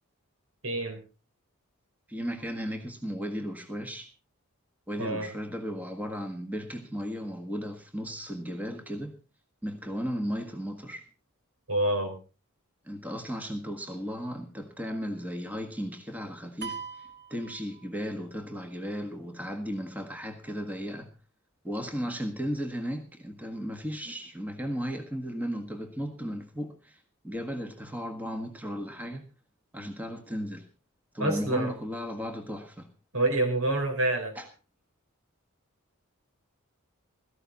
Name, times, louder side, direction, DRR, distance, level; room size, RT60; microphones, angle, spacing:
voice 1, 0.6-1.0 5.0-5.3 11.7-12.2 31.2-31.7 33.1-34.3, right 2 dB, 75° right, 5 dB, 4.6 m, -27 dB
voice 2, 2.1-4.1 4.9-9.2 9.6-11.0 12.8-21.1 21.6-29.3 29.7-30.6 31.1-32.9 34.3-34.5, equal, 5° right, 5 dB, 1.6 m, -35 dB
sound 1, 16.6-18.3, right 6 dB, 50° right, 1.8 m, -41 dB
16.5 x 14.5 x 4.1 m, 0.34 s
head